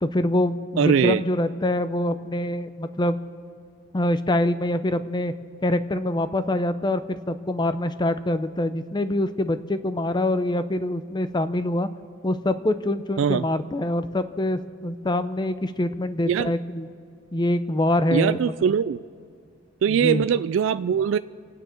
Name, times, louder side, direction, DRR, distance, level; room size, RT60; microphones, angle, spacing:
voice 1, 0.0-3.2 3.9-5.3 5.6-11.9 12.2-16.9 17.3-18.5 19.9-20.2, left 1 dB, 20° left, 12 dB, 0.6 m, -25 dB
voice 2, 0.8-1.2 13.2-13.4 16.3-16.5 18.1-19.0 19.8-21.2, right 7 dB, 70° right, 13 dB, 0.3 m, -21 dB
28.0 x 9.6 x 4.5 m, 2.3 s
head